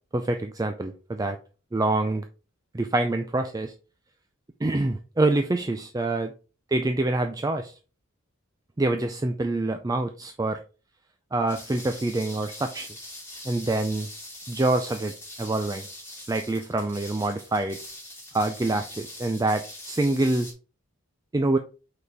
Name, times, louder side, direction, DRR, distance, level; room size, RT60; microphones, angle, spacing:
voice 1, 0.1-1.4 1.7-2.2 2.7-3.7 4.6-6.3 6.7-7.7 8.8-10.6 11.3-12.9 13.5-14.1 14.5-15.1 15.4-15.8 16.3-17.8 18.3-20.5 21.3-21.6, right 2 dB, 15° right, 7 dB, 0.4 m, -26 dB
sound 1, 11.5-20.5, left 1 dB, 10° left, 2.6 m, -42 dB
5.4 x 4.1 x 4.5 m, 0.34 s
head